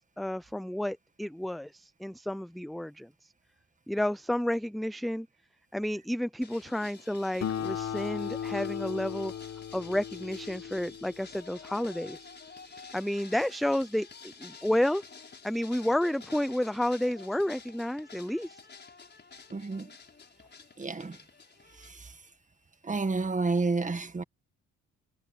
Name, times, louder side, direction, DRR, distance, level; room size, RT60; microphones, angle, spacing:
voice 1, 0.2-3.3 3.9-5.3 5.7-9.3 9.7-12.3 12.9-15.0 15.4-18.6, left 1 dB, ahead, 0.5 m, -31 dB
sound 1, 6.4-21.9, left 5 dB, 35° left, 6.0 m, -50 dB
Acoustic guitar, 7.4-12.3, left 8 dB, 55° left, 1.7 m, -37 dB
voice 2, 19.5-20.0 20.8-21.2 21.7-22.3 22.8-24.2, right 3 dB, 25° right, 1.9 m, -31 dB
cardioid pair, 90°, 30 cm